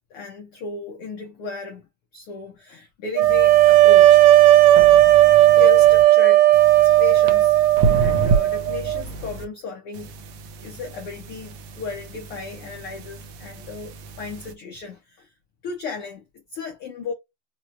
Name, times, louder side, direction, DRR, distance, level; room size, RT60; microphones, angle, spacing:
voice 1, 0.1-1.8 2.1-4.2 5.5-6.5 6.7-7.6 7.9-10.2 10.6-15.3 15.6-17.1, left 4 dB, 75° left, 1.3 m, -34 dB
sound 1, 3.2-6.0 6.5-9.5 9.9-14.5, right 5 dB, 70° right, 1.9 m, -30 dB
sound 2, 3.2-9.0, right 14 dB, 85° right, 1.6 m, -14 dB
6.1 x 2.4 x 2.6 m
omnidirectional pair, 3.8 m